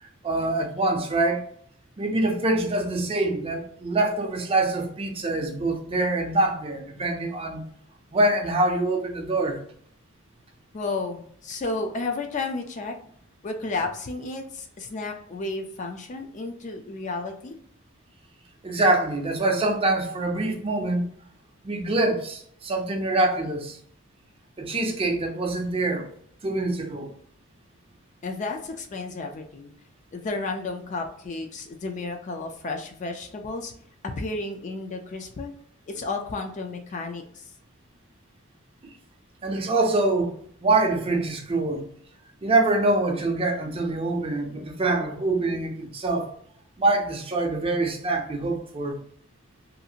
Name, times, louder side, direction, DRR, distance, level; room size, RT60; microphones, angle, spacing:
voice 1, 0.0-1.5 2.0-7.6 8.1-9.6 18.6-21.1 21.6-23.8 24.6-26.1 26.4-27.1 39.4-40.3 40.6-41.9 42.4-46.3 46.8-49.0, right 2 dB, 25° right, 0.5 m, -25 dB
voice 2, 10.7-13.0 13.4-17.6 28.2-29.7 30.1-33.7 34.0-35.5 35.9-37.4, left 3 dB, 35° left, 0.3 m, -32 dB
2.7 x 2.4 x 2.7 m
head